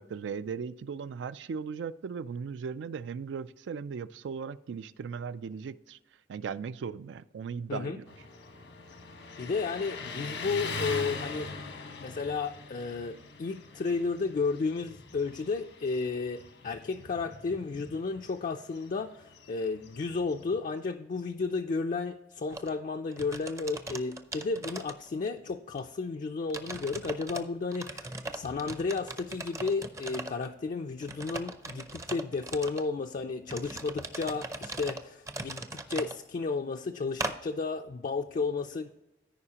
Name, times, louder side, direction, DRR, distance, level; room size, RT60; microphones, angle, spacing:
voice 1, 0.0-6.0 6.3-8.1, right 6 dB, 80° right, 16 dB, 0.3 m, -37 dB
Motorcycle, 8.1-20.7, left 3 dB, 85° left, 1.2 m, -42 dB
voice 2, 9.4-11.5 12.0-38.9, left 4 dB, 45° left, 4 dB, 0.4 m, -33 dB
sound 1, 22.5-22.7 23.1-25.4 25.8-25.9 26.5-27.4 27.7-30.5 31.0-32.9 33.5-36.2 37.2-37.4, right 2 dB, 15° right, 0.5 m, -39 dB
14.5 x 5.0 x 2.9 m, 0.96 s
head